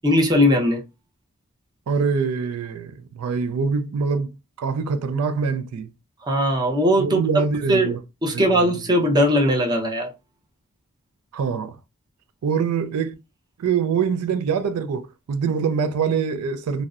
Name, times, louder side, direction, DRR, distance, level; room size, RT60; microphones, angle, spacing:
voice 1, 0.0-0.8 6.2-7.2 7.7-7.9 8.2-10.1, equal, 20° right, 0.6 m, -19 dB
voice 2, 1.9-4.3 4.6-5.9 7.0-8.0 8.3-8.7 11.3-11.8 12.4-13.1 13.6-16.9, right 5 dB, 90° right, 0.3 m, -24 dB
2.6 x 2.0 x 2.4 m
head